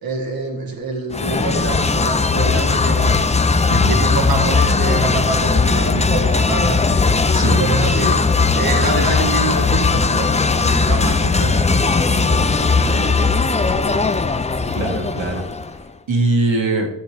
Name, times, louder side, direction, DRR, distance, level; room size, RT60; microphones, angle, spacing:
voice 1, 0.0-3.2 3.7-6.9 7.4-8.3 8.5-14.0, right 3 dB, 50° right, 2 dB, 1.6 m, -26 dB
sound 1, 1.1-15.8, left 4 dB, 15° left, 0.3 m, -18 dB
voice 2, 7.3-7.6 11.2-11.6 14.7-15.4 16.1-16.9, right 2 dB, 85° right, 1 dB, 1.8 m, -21 dB
14.0 x 7.2 x 3.3 m, 0.91 s
wide cardioid pair, 120°, 44 cm